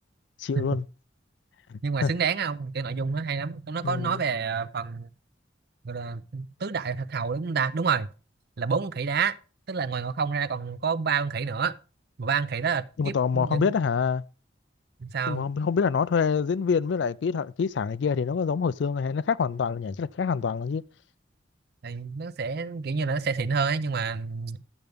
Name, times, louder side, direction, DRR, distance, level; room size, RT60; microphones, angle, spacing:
voice 1, 0.4-0.8 1.7-2.1 3.8-4.2 13.0-14.2 15.3-20.8, left 6 dB, 65° left, 0.4 m, -26 dB
voice 2, 1.8-5.1 5.8-8.1 8.6-9.3 9.7-11.7 12.2-13.7 15.0-15.4 21.8-24.6, right 5 dB, 55° right, 0.5 m, -28 dB
12.0 x 7.9 x 3.5 m
head